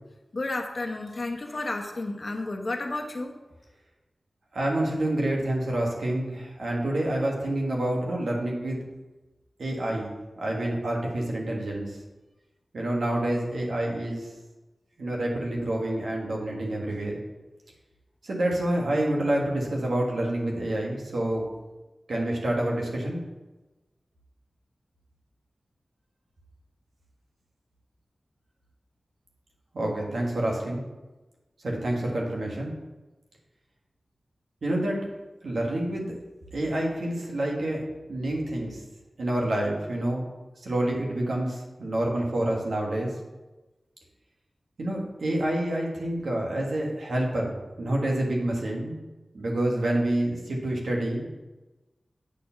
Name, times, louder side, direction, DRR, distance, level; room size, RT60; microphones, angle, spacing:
voice 1, 0.3-3.3, left 2 dB, 45° left, 3 dB, 1.0 m, -32 dB
voice 2, 4.5-8.8 9.6-12.0 12.7-14.3 15.0-17.1 18.2-21.5 22.1-23.2 29.7-30.8 31.6-32.7 34.6-35.0 35.4-36.1 36.5-37.8 38.1-38.8 39.2-40.2 40.6-43.1 44.8-49.0 49.3-51.3, right 1 dB, 90° right, -2 dB, 1.6 m, -28 dB
8.2 x 4.4 x 5.7 m, 1.1 s
wide cardioid pair, 85°, 0 cm